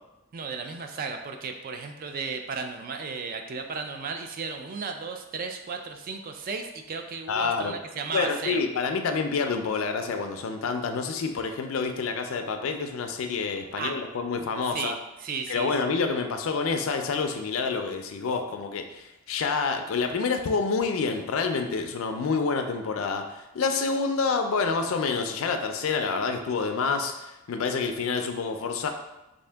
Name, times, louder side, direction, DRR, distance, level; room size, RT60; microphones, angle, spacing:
voice 1, 0.3-8.6 13.8-13.9 14.7-15.7, right 5 dB, 40° right, 5 dB, 0.3 m, -34 dB
voice 2, 7.3-7.7 8.1-14.9 15.5-23.2 23.5-28.9, left 4 dB, 70° left, 6 dB, 0.4 m, -28 dB
3.6 x 2.6 x 3.3 m, 0.96 s
head